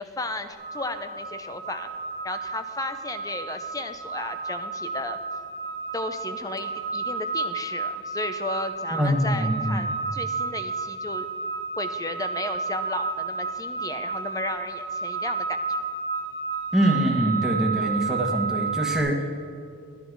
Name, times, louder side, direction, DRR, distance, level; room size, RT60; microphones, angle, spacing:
voice 1, 0.0-1.9 2.2-5.2 5.9-11.3 11.8-15.8, left 2 dB, 15° left, 9 dB, 0.6 m, -34 dB
sound 1, 0.6-19.0, right 4 dB, 40° left, 1.9 m, -31 dB
voice 2, 8.9-9.9 16.7-19.1, equal, ahead, 0 dB, 1.2 m, -24 dB
12.0 x 10.5 x 4.6 m, 2.4 s
head